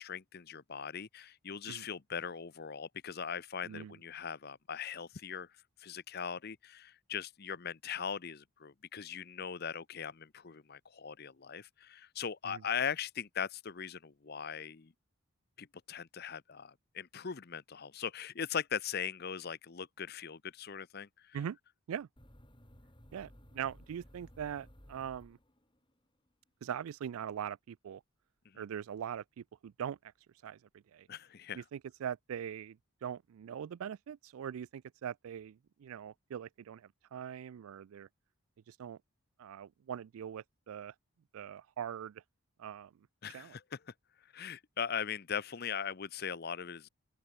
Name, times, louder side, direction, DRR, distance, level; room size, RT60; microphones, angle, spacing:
voice 1, 0.0-5.5 5.8-14.9 15.6-21.4 28.4-28.6 31.1-31.6 43.2-43.8 44.2-46.9, left 7 dB, 45° left, 0.6 m, -40 dB
sound 1, 22.2-25.9, equal, 20° left, 5.6 m, -57 dB
voice 2, 23.1-25.4 26.6-28.0 28.5-30.1 30.4-31.1 31.5-38.1 38.7-39.0 39.4-40.9 41.3-42.2 42.6-42.9 43.3-43.6, right 8 dB, 75° right, 0.3 m, -42 dB
open air
head